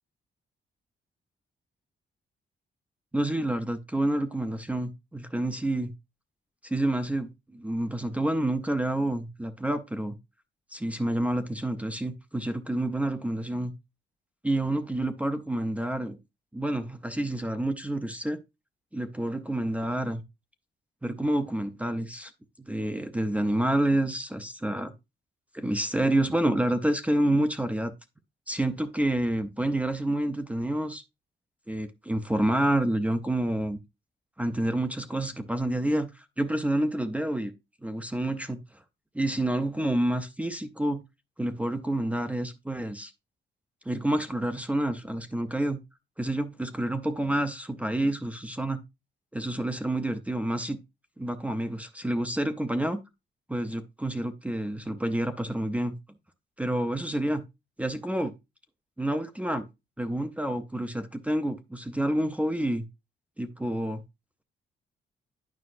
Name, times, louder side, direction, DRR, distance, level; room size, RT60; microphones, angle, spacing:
voice 1, 3.1-5.9 6.6-10.2 10.7-13.7 14.4-16.2 16.5-18.4 18.9-20.2 21.0-22.3 22.6-24.9 25.5-27.9 28.5-31.0 31.7-33.8 34.4-37.5 37.8-38.6 39.1-41.0 41.4-43.1 43.9-45.8 46.2-48.8 49.3-50.8 51.2-53.0 53.5-56.0 56.6-57.4 57.8-58.3 59.0-59.7 60.0-62.9 63.4-64.0, right 1 dB, 5° right, 0.5 m, -28 dB
9.5 x 5.4 x 2.5 m
wide cardioid pair, 145°, 19 cm